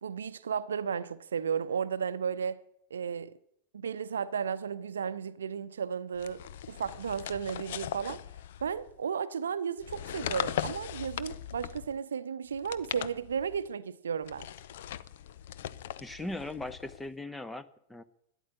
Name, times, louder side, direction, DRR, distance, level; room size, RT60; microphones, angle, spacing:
voice 1, 0.0-2.6 2.9-3.3 3.7-8.2 8.6-14.5, right 7 dB, 70° right, 0.7 m, -34 dB
sound 1, 6.2-8.9 9.8-12.0 12.5-13.7 14.2-17.1, left 11 dB, 55° left, 0.6 m, -39 dB
voice 2, 16.0-18.0, left 2 dB, 5° left, 0.9 m, -39 dB
13.0 x 10.0 x 8.7 m
figure-of-eight pair, 90°, 0 cm